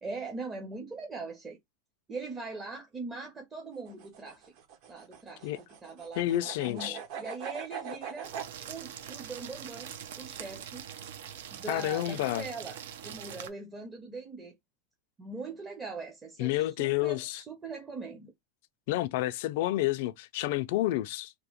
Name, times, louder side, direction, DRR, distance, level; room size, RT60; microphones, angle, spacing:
voice 1, 0.0-1.6 2.1-4.5 4.9-5.5 5.8-8.3 8.7-9.9 10.2-10.9 11.5-14.6 15.2-18.3, right 3 dB, 20° right, 0.5 m, -41 dB
sound 1, 3.8-8.5, right 7 dB, 55° right, 0.8 m, -42 dB
voice 2, 6.2-7.0 11.7-12.5 16.4-17.4 18.9-21.3, left 15 dB, 65° left, 0.3 m, -29 dB
sound 2, 8.2-13.5, right 9 dB, 80° right, 0.4 m, -43 dB
2.8 x 2.1 x 2.8 m
supercardioid pair, 145°, 0 cm